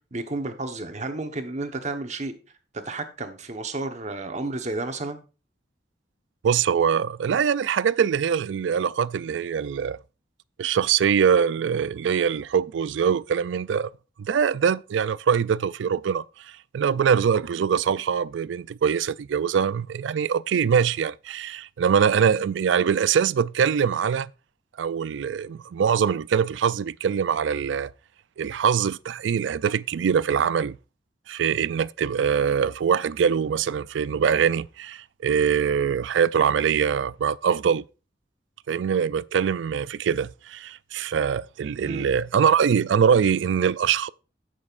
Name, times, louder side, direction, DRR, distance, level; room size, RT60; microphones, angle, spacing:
voice 1, 0.1-2.3 2.7-5.2 41.8-42.1, right 2 dB, 40° right, 1.1 m, -31 dB
voice 2, 6.4-10.0 10.6-13.9 14.2-24.3 24.8-27.9 28.4-30.8 31.3-37.8 38.7-44.1, right 7 dB, 80° right, 0.3 m, -23 dB
16.0 x 6.4 x 2.5 m
head